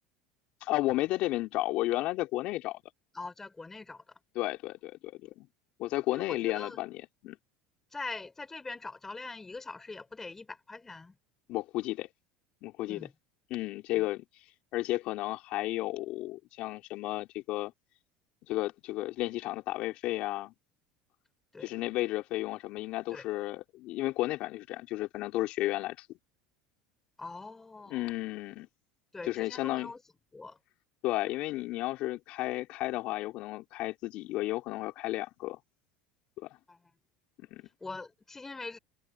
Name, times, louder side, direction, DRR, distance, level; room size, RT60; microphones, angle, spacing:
voice 1, 0.6-2.8 4.3-5.5 5.8-7.4 11.5-12.1 12.6-13.1 13.5-14.2 14.7-17.7 18.5-20.5 21.6-26.1 27.9-28.7 29.2-29.9 31.0-35.6 37.4-37.6, left 17 dB, 60° left, 4.1 m, -33 dB
voice 2, 3.1-4.0 6.1-6.8 7.9-11.1 12.8-13.1 13.9-14.0 21.5-21.7 23.1-23.2 27.2-28.1 29.1-30.0 30.3-30.6 36.7-36.8 37.8-38.8, left 3 dB, 15° left, 5.5 m, -43 dB
hypercardioid pair, 85°, 2 cm